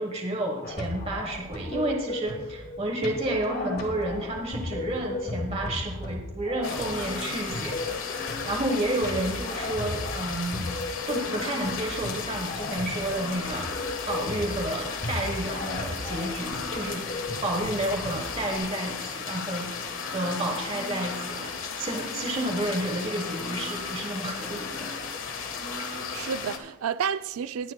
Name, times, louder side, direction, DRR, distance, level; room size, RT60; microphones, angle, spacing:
voice 1, 0.0-8.0 8.4-10.7 11.1-13.7 14.1-17.1 17.4-19.7 20.1-24.9, right 1 dB, 30° right, 1.2 m, -30 dB
sound 1, 0.6-18.6, left 2 dB, 45° left, 1.9 m, -36 dB
sound 2, 6.6-26.6, left 5 dB, 70° left, 1.3 m, -35 dB
voice 2, 25.8-27.7, right 7 dB, 90° right, 0.4 m, -31 dB
20.0 x 9.3 x 2.2 m
head